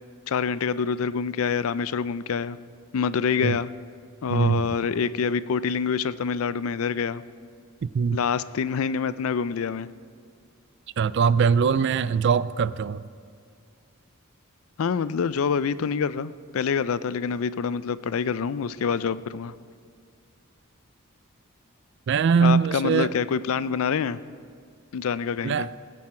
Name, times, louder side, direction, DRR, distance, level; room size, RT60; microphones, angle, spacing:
voice 1, 0.3-2.6 2.9-3.7 4.2-7.2 8.1-9.9 14.8-19.5 22.4-24.2 24.9-25.7, left 6 dB, 75° left, 16 dB, 0.4 m, -26 dB
voice 2, 4.3-4.7 7.8-8.2 11.0-13.0 22.1-23.1 25.4-25.7, right 6 dB, 55° right, 17 dB, 0.3 m, -22 dB
19.5 x 9.7 x 4.3 m, 2.2 s
head